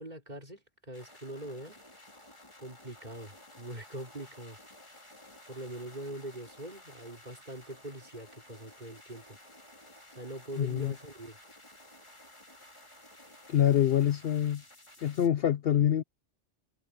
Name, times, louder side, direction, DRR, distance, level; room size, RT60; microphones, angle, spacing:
voice 1, 0.0-1.8 2.6-4.6 5.5-9.4 10.2-11.4, right 1 dB, 35° right, 4.4 m, -43 dB
sound 1, 0.9-15.3, left 1 dB, 25° left, 3.3 m, -54 dB
voice 2, 10.6-10.9 13.5-14.6 15.0-16.0, left 10 dB, 60° left, 0.7 m, -25 dB
omnidirectional pair, 1.2 m